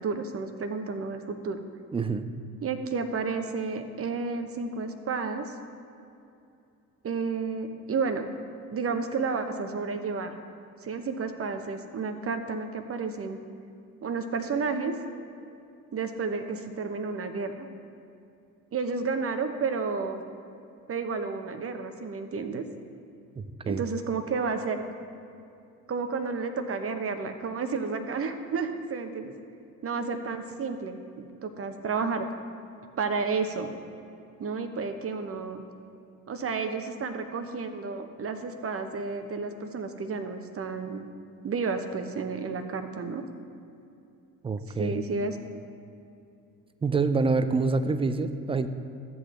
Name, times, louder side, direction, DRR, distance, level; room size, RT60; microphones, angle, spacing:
voice 1, 0.0-1.6 2.6-5.5 7.0-8.3 8.7-10.3 10.8-13.4 14.0-14.9 15.9-17.7 18.7-20.2 20.9-22.7 23.6-24.8 25.9-29.3 29.8-32.3 33.0-33.7 34.4-35.6 36.3-41.1 41.4-43.2 44.8-45.4, right 4 dB, 30° right, 7 dB, 1.0 m, -31 dB
voice 2, 1.9-2.3 23.4-23.8 44.4-45.0 46.8-48.7, right 4 dB, 15° right, 11 dB, 0.5 m, -26 dB
13.5 x 7.9 x 3.3 m, 2.6 s
hypercardioid pair, 60°, 44 cm